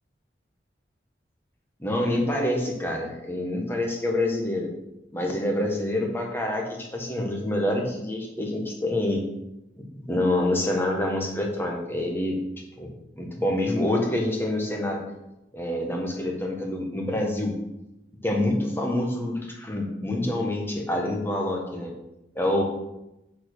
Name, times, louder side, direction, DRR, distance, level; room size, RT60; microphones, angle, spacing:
voice 1, 1.8-4.7 5.1-9.3 9.8-12.4 12.8-15.0 15.5-17.6 18.2-21.9 22.3-22.6, left 1 dB, 15° left, 0 dB, 1.4 m, -27 dB
7.0 x 4.9 x 6.6 m, 0.90 s
head